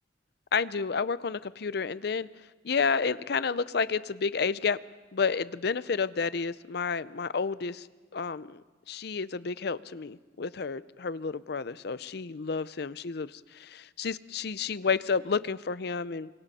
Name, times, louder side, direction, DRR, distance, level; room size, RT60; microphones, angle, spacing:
voice 1, 0.5-2.3 2.6-4.8 5.1-7.9 8.1-8.6 8.9-16.3, left 5 dB, 65° left, 16 dB, 0.6 m, -30 dB
28.5 x 25.0 x 4.2 m, 1.3 s
head